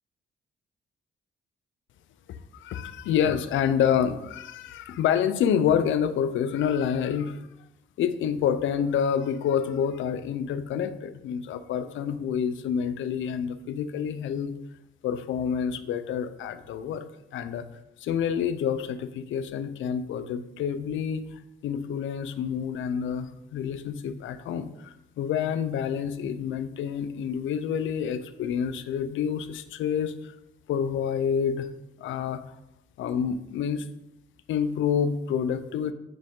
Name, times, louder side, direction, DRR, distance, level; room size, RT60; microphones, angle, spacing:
voice 1, 2.3-7.4 8.0-14.5 15.0-17.0 17.3-17.6 18.0-30.3 30.7-31.7 32.0-32.4 33.0-33.9 34.5-35.9, left 8 dB, 75° left, 12 dB, 0.6 m, -28 dB
9.2 x 4.6 x 3.8 m, 0.88 s
cardioid pair, 90°, 20 cm